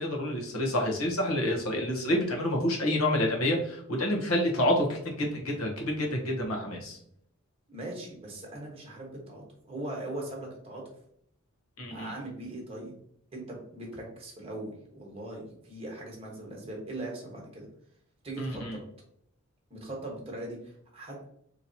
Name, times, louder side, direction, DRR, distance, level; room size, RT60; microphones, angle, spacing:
voice 1, 0.0-7.0 11.8-12.1 18.4-18.8, left 1 dB, 80° left, 1 dB, 1.0 m, -28 dB
voice 2, 7.7-10.8 11.9-12.9 13.3-17.6 18.2-18.8 19.7-21.3, right 1 dB, 25° right, -1 dB, 1.2 m, -40 dB
4.1 x 3.0 x 2.8 m, 0.67 s
head